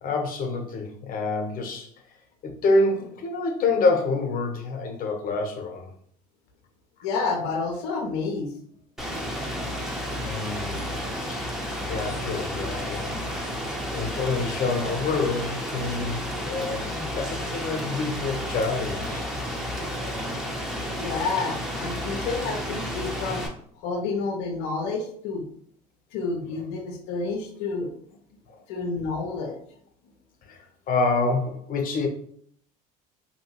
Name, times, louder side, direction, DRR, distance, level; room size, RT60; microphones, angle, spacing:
voice 1, 0.0-1.9 2.4-5.9 10.2-11.0 11.3-11.4 11.9-13.1 13.9-19.3 28.5-28.6 30.5-30.6 30.9-32.1, left 3 dB, 45° left, 3 dB, 0.9 m, -27 dB
voice 2, 7.0-8.5 21.0-23.5 23.8-25.4 26.1-27.9 28.7-29.6, left 4 dB, 70° left, 3 dB, 0.6 m, -29 dB
Rain, 9.0-23.5, equal, ahead, 0.7 m, -31 dB
2.8 x 2.6 x 2.9 m, 0.62 s
hypercardioid pair, 75°, 20 cm